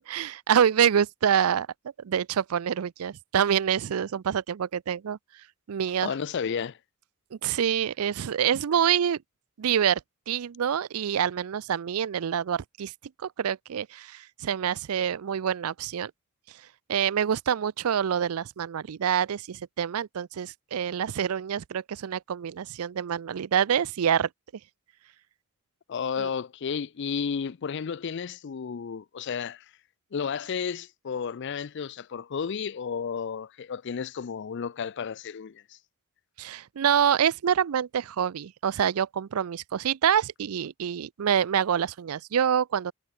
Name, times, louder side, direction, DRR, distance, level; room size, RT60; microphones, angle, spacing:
voice 1, 0.1-1.7 2.0-5.2 5.7-6.1 7.3-9.2 9.6-10.0 10.3-12.9 13.2-16.1 16.9-24.3 26.2-26.3 36.4-42.9, right 8 dB, 85° right, 0.4 m, -26 dB
voice 2, 6.0-6.8 25.9-29.6 30.1-35.8, left 6 dB, 55° left, 0.4 m, -32 dB
head